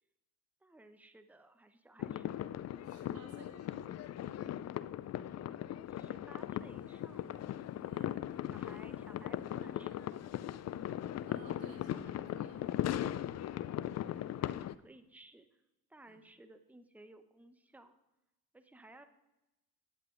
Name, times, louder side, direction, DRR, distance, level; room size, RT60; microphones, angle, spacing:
voice 1, 0.6-2.4 5.9-7.5 8.5-10.1 14.3-15.6 15.9-18.0 18.5-19.0, right 2 dB, 5° right, 9 dB, 0.9 m, -58 dB
sound 1, 2.0-14.7, left 12 dB, 35° left, 0.4 m, -39 dB
voice 2, 2.8-4.6 7.8-8.1 11.3-12.6 16.1-16.2, right 4 dB, 50° right, 2 dB, 2.2 m, -57 dB
sound 2, 6.5-14.6, left 3 dB, 65° left, 4.5 m, -68 dB
16.5 x 10.0 x 2.6 m, 0.97 s
hypercardioid pair, 50°, 46 cm